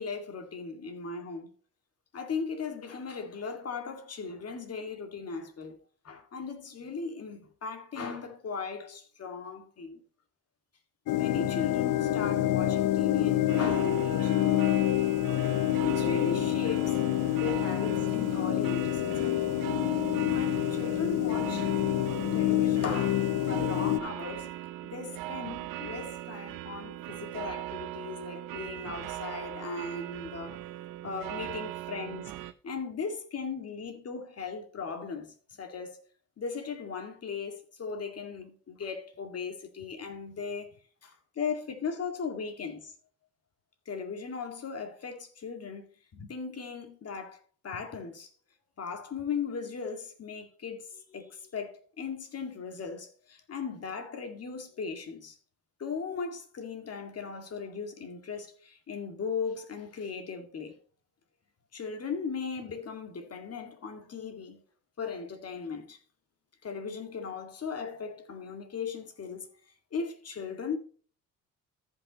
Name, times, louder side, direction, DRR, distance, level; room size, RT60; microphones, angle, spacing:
voice 1, 0.0-1.5 2.1-10.0 11.1-14.4 15.8-17.0 17.4-19.5 20.3-21.7 22.2-24.5 24.8-30.6 31.0-36.0 36.4-40.7 41.0-42.9 43.9-48.3 48.8-55.4 55.8-60.8 61.7-64.6 65.0-66.0 66.6-69.5 69.9-70.8, left 5 dB, 45° left, 2.1 m, -38 dB
sound 1, 11.1-24.0, left 14 dB, 60° left, 0.7 m, -27 dB
sound 2, 13.5-32.5, right 14 dB, 70° right, 0.8 m, -39 dB
14.5 x 5.7 x 3.0 m
cardioid pair, 95°, 34 cm